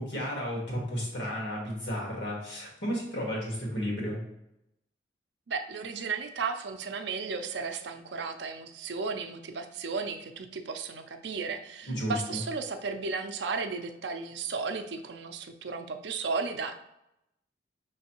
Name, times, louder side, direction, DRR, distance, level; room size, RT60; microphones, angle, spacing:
voice 1, 0.0-4.2 11.9-12.4, equal, 70° left, -2 dB, 1.6 m, -33 dB
voice 2, 5.5-16.8, right 4 dB, 65° right, 7 dB, 0.4 m, -34 dB
5.3 x 3.2 x 2.9 m, 0.85 s
head